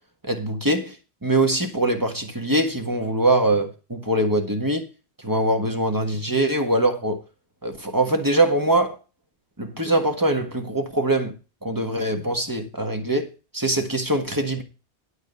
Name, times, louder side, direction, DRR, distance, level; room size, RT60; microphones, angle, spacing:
voice 1, 0.2-4.9 5.2-7.2 7.6-9.0 9.6-11.3 11.6-13.3 13.5-14.6, right 1 dB, 20° right, 1.5 m, -22 dB
11.5 x 4.6 x 6.8 m
omnidirectional pair, 1.2 m